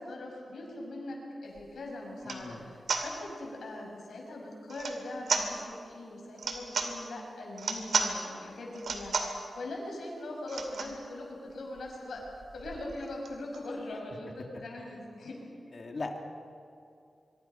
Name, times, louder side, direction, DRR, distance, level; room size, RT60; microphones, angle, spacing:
voice 1, 0.0-12.2 12.5-15.3, left 1 dB, 85° left, 0 dB, 6.3 m, -41 dB
sound 1, 1.6-1.7 2.2-2.4 2.9-3.1 4.7-5.0 5.3-5.5 6.3-6.9 7.5-8.1 8.7-9.4 10.5-11.0 11.5-11.6 11.8-11.9 12.2-13.7, right 4 dB, 80° right, 2.5 m, -33 dB
voice 2, 2.2-2.7 15.7-16.2, left 3 dB, 50° left, 3 dB, 2.3 m, -38 dB
25.0 x 23.5 x 5.7 m, 2.6 s
wide cardioid pair, 90°, 0 cm